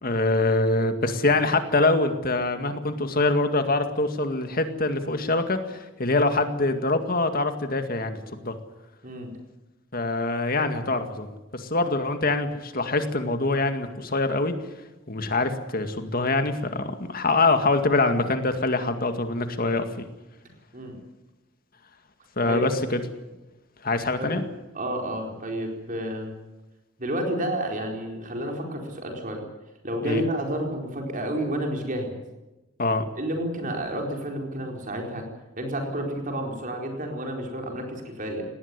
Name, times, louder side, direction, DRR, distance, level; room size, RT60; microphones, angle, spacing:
voice 1, 0.0-8.6 9.9-14.5 15.1-19.9 22.4-23.0 23.8-24.4 30.0-30.2 32.8-33.0, left 2 dB, 50° left, 7 dB, 2.1 m, -24 dB
voice 2, 24.7-26.3 27.0-29.4 29.8-32.2 33.2-35.2 35.6-38.4, right 1 dB, 45° right, 2 dB, 4.5 m, -30 dB
19.0 x 18.5 x 9.8 m, 1.1 s
head